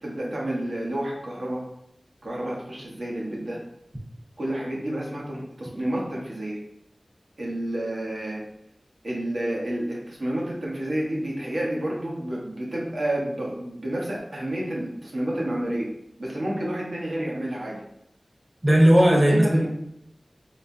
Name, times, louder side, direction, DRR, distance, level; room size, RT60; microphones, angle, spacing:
voice 1, 0.0-1.6 2.2-3.6 4.4-6.6 7.4-8.4 9.0-15.9 16.2-17.8 19.1-19.7, right 1 dB, 85° right, -4 dB, 1.1 m, -30 dB
voice 2, 18.6-19.7, equal, 35° right, 0 dB, 0.9 m, -17 dB
4.2 x 3.1 x 2.7 m, 0.78 s
wide cardioid pair, 55°, 0 cm